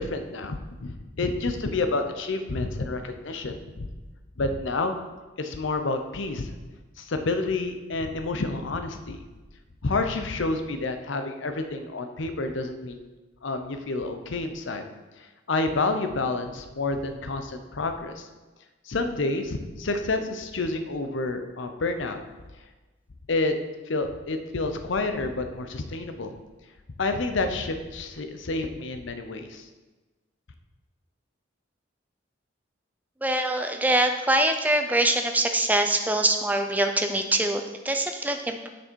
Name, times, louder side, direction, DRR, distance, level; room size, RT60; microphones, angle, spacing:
voice 1, 0.0-3.9 4.4-4.9 5.4-6.5 7.0-9.2 9.8-13.0 13.4-14.8 15.2-18.3 18.8-22.2 23.3-23.5 23.9-26.3 27.0-29.7, left 3 dB, 75° left, 7 dB, 0.7 m, -29 dB
voice 2, 33.2-38.7, right 1 dB, 10° right, 5 dB, 0.4 m, -24 dB
6.8 x 6.3 x 4.5 m, 1.2 s
head